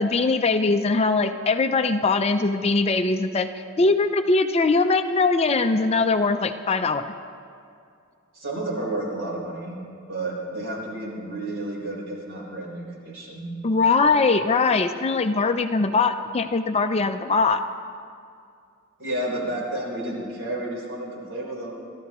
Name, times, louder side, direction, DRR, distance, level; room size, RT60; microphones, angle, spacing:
voice 1, 0.0-3.5 3.8-7.0 13.6-17.6, left 3 dB, 30° left, 8 dB, 0.4 m, -21 dB
voice 2, 8.3-9.8 10.1-13.5 19.0-21.8, right 1 dB, 60° right, -3 dB, 3.9 m, -31 dB
29.0 x 13.0 x 3.0 m, 2.4 s
head